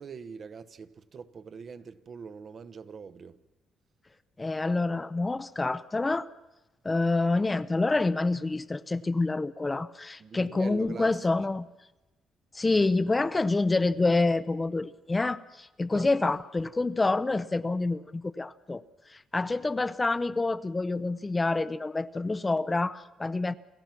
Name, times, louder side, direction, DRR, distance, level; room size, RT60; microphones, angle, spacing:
voice 1, 0.0-3.4 10.2-11.1 15.9-16.1, right 5 dB, 50° right, 0.9 m, -43 dB
voice 2, 4.4-6.3 6.8-11.7 12.5-18.8 19.1-23.5, left 3 dB, 20° left, 0.6 m, -27 dB
28.5 x 15.0 x 6.0 m
cardioid pair, 95°, 0 cm